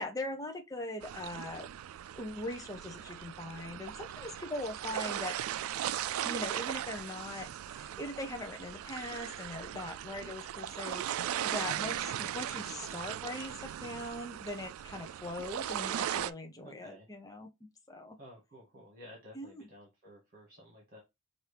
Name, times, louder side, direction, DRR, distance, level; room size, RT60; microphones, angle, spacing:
voice 1, 0.0-1.7 2.1-5.4 6.2-17.5 17.9-18.2 19.3-19.7, left 1 dB, 15° left, 0.6 m, -41 dB
sound 1, 1.0-16.3, right 11 dB, 80° right, 0.3 m, -38 dB
voice 2, 16.6-17.1 18.2-21.0, equal, 45° right, 1.6 m, -53 dB
5.8 x 2.6 x 3.3 m
head